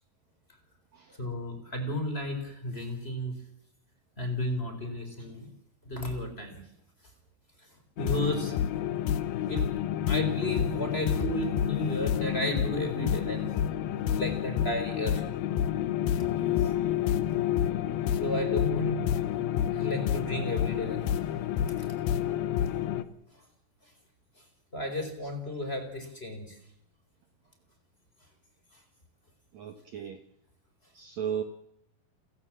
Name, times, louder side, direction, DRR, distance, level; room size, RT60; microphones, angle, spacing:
voice 1, 1.2-3.4 4.2-5.5 5.8-6.6 8.0-8.5 9.5-9.7 10.1-13.6 14.1-15.2 16.2-16.3 16.6-16.7 18.1-19.0 19.7-21.1 21.8-21.9 22.3-22.4 23.8-23.9 24.7-26.6 28.7-28.8, left 1 dB, 15° left, 6 dB, 4.1 m, -33 dB
sound 1, 8.0-23.0, left 10 dB, 80° left, 2.9 m, -29 dB
voice 2, 29.5-30.2 30.9-31.4, right 8 dB, 60° right, 6 dB, 2.3 m, -35 dB
29.0 x 15.5 x 7.4 m, 0.77 s
omnidirectional pair, 4.3 m